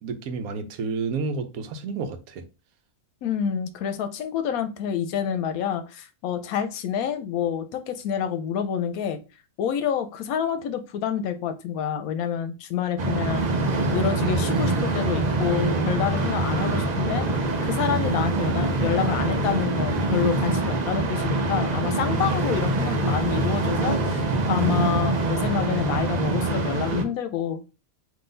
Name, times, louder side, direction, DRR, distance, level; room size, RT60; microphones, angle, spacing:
voice 1, 0.0-2.4, right 4 dB, 80° right, 1.1 m, -30 dB
voice 2, 3.2-9.2 9.6-13.5 13.9-17.3 17.6-27.6, left 8 dB, 80° left, 1.0 m, -28 dB
sound 1, 13.0-27.0, right 2 dB, 55° right, 0.5 m, -24 dB
3.9 x 2.8 x 3.8 m
omnidirectional pair, 1.5 m